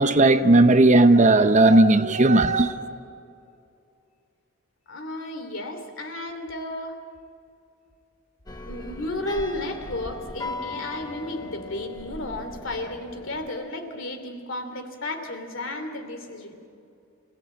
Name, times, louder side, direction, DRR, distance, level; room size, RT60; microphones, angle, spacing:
voice 1, 0.0-2.8, right 2 dB, 35° right, 0.7 m, -16 dB
voice 2, 4.9-7.0 8.6-16.6, left 1 dB, 60° left, 2.8 m, -33 dB
sound 1, 8.5-13.5, left 2 dB, 15° left, 1.0 m, -38 dB
27.5 x 17.5 x 8.9 m
head